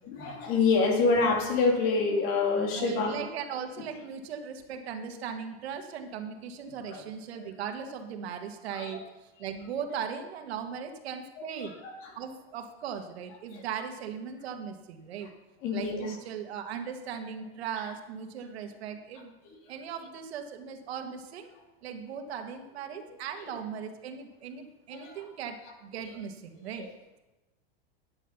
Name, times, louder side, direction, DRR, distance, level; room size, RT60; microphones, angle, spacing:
voice 1, 0.0-3.2 6.9-7.0 7.3-7.4 8.7-9.0 11.4-12.1 13.5-13.6 15.6-16.2 24.9-25.2 26.8-26.9, left 4 dB, 45° left, 3 dB, 2.4 m, -27 dB
voice 2, 2.8-9.0 9.4-11.8 12.2-15.3 15.7-19.3 19.7-21.5 21.8-26.9, right 7 dB, 85° right, 5 dB, 1.8 m, -38 dB
10.0 x 9.8 x 5.7 m, 1.1 s
supercardioid pair, 155°, 31 cm